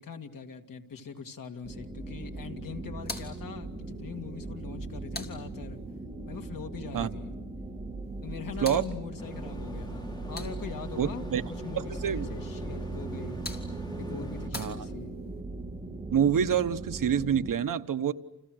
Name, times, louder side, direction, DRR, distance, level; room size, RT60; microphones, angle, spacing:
voice 1, 0.0-5.8 6.3-7.4 8.2-11.2 11.6-13.4 13.9-15.2, left 6 dB, 75° left, 2.3 m, -42 dB
sound 1, 1.6-17.5, right 2 dB, 10° right, 3.6 m, -39 dB
sound 2, 3.0-6.0 8.0-11.0 12.9-15.4, left 2 dB, 30° left, 3.1 m, -46 dB
sound 3, 9.2-14.5, equal, 10° left, 3.2 m, -44 dB
voice 2, 11.0-11.4 12.0-12.3 14.5-14.9 16.1-18.1, right 8 dB, 70° right, 1.1 m, -26 dB
29.5 x 29.5 x 6.4 m
wide cardioid pair, 180°, 34 cm